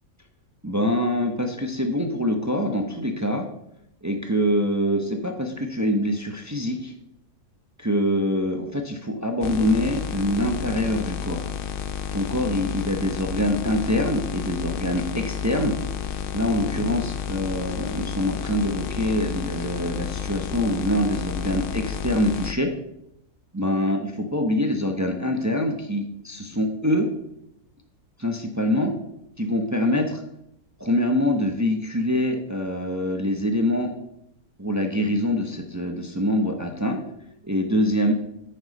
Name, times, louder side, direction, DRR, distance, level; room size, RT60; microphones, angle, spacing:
voice 1, 0.6-3.5 4.0-6.9 7.8-11.5 12.1-15.8 16.3-22.7 23.5-27.1 28.2-28.9 29.4-30.2 30.8-33.9 34.6-37.0 37.4-38.1, equal, 15° right, 4 dB, 0.6 m, -24 dB
sound 1, 9.4-22.5, left 8 dB, 60° left, 0.6 m, -31 dB
9.8 x 5.6 x 5.2 m, 0.80 s
omnidirectional pair, 1.5 m